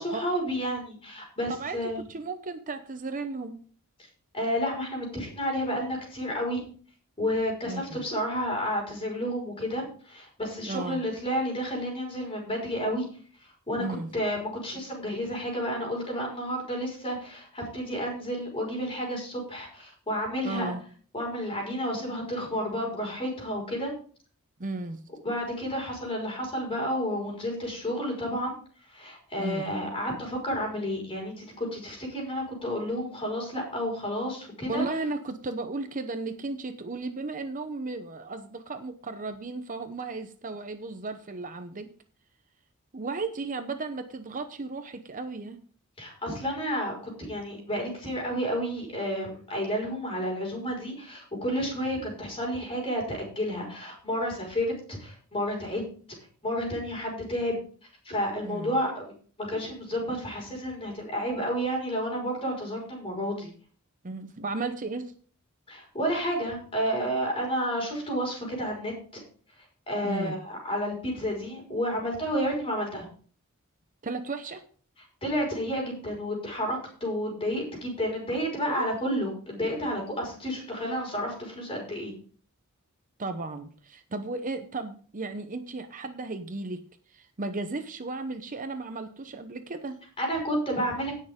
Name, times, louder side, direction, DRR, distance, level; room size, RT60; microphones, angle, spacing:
voice 1, 0.0-2.0 4.3-6.7 7.2-13.1 13.7-13.9 14.1-20.7 21.1-23.9 25.2-28.5 28.9-34.8 46.0-55.8 56.4-57.6 58.1-63.5 65.7-69.2 69.9-73.1 75.2-82.1 90.2-91.1, equal, 25° left, 0 dB, 5.4 m, -31 dB
voice 2, 1.5-3.6 7.6-8.1 10.6-11.0 13.8-14.1 20.4-20.8 24.6-25.0 29.4-29.6 34.7-41.9 42.9-45.6 58.4-58.7 64.0-65.1 70.0-70.4 74.0-74.6 78.7-78.8 83.2-86.8 87.1-90.0, right 3 dB, 35° right, 8 dB, 0.8 m, -35 dB
17.5 x 6.6 x 3.7 m, 0.43 s
head